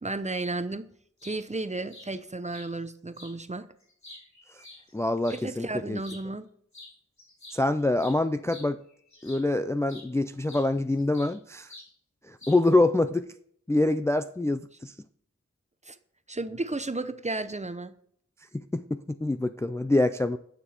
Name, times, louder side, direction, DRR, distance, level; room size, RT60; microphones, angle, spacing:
voice 1, 0.0-0.9 1.2-3.7 5.3-6.5 15.9-16.0 16.3-17.9, right 2 dB, 25° right, 11 dB, 0.7 m, -33 dB
sound 1, 1.0-1.4 1.9-2.1 2.5-2.7 3.1-3.3 3.8-5.4 6.0-6.2 6.7-6.9 7.2-9.5 9.9-10.1 10.5-11.4 11.7-11.9 12.4-12.8, left 2 dB, 70° left, 3.3 m, -48 dB
voice 2, 4.9-6.0 7.5-8.8 9.2-11.7 12.3-13.3 13.7-14.9 18.5-20.4, left 2 dB, 10° left, 10 dB, 0.4 m, -25 dB
9.2 x 6.8 x 4.3 m, 0.64 s
wide cardioid pair, 55°, 29 cm